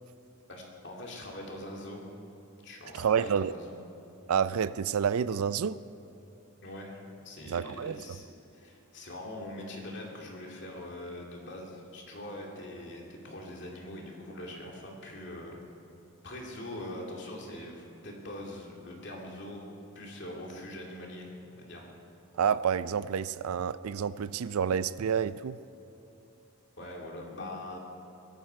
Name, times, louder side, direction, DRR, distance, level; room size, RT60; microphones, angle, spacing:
voice 1, 0.5-2.1 2.6-3.8 6.6-7.0 7.2-15.6 16.2-19.7 19.9-21.9 26.8-27.8, left 1 dB, 55° left, -1 dB, 2.6 m, -42 dB
voice 2, 2.9-3.5 4.3-5.8 7.5-8.0 22.3-25.6, right 7 dB, 85° right, 16 dB, 0.4 m, -29 dB
22.5 x 11.0 x 4.7 m, 3.0 s
head